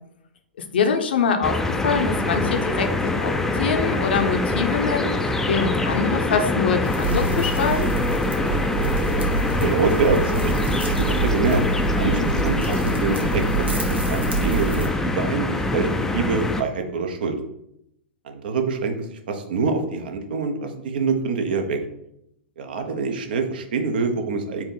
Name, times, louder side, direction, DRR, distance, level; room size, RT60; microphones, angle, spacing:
voice 1, 0.7-1.6 1.8-5.1 5.5-7.9, left 5 dB, 65° left, 6 dB, 0.6 m, -24 dB
sound 1, 1.4-16.6, left 2 dB, 5° left, 0.3 m, -24 dB
sound 2, 6.8-14.9, right 4 dB, 85° right, 1.1 m, -27 dB
voice 2, 9.6-11.6 11.9-17.4 18.2-21.8 22.6-24.6, right 4 dB, 60° right, 6 dB, 0.7 m, -25 dB
4.3 x 2.8 x 3.8 m, 0.77 s
figure-of-eight pair, 105°, 6 cm